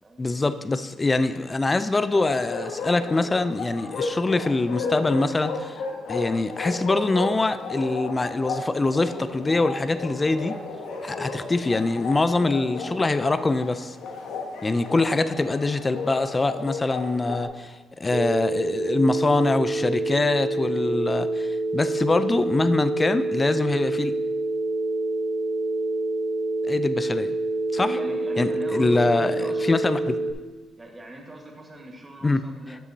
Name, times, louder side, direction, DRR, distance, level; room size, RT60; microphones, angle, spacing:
voice 1, 0.2-5.8 6.1-10.6 11.0-14.0 14.6-24.1 26.7-27.3 27.7-27.9 28.4-30.2 32.2-32.4, left 2 dB, 25° left, 12 dB, 0.4 m, -24 dB
Bark, 2.1-17.5, left 3 dB, 85° left, 1.2 m, -34 dB
Telephone, 18.1-30.3, right 2 dB, 55° right, 1.1 m, -27 dB
voice 2, 27.8-29.7 30.8-32.8, right 1 dB, 25° right, 1 dB, 1.5 m, -39 dB
11.5 x 7.1 x 2.8 m, 1.2 s
cardioid pair, 90°, 0 cm